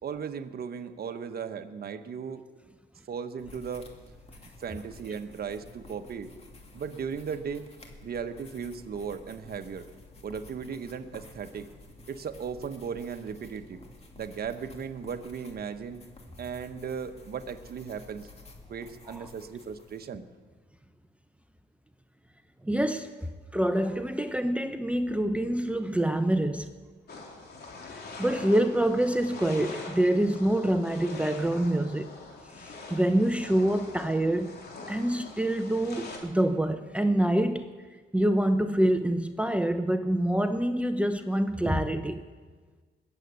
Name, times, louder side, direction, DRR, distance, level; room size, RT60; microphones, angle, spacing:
voice 1, 0.0-2.4 3.1-3.9 4.6-6.3 6.7-7.7 8.0-9.9 10.2-11.7 12.1-13.8 14.2-16.0 16.4-18.3 18.7-20.3, right 6 dB, 50° right, 8 dB, 1.1 m, -36 dB
sound 1, 3.4-20.1, left 2 dB, 30° left, 2.6 m, -51 dB
voice 2, 22.6-23.1 23.5-26.7 28.2-32.1 32.6-34.6 34.9-37.7 38.1-42.2, right 1 dB, 5° right, 8 dB, 0.8 m, -26 dB
sound 2, 27.1-36.2, left 3 dB, 55° left, 3.5 m, -43 dB
20.5 x 8.1 x 8.2 m, 1.4 s
cardioid pair, 90°, 20 cm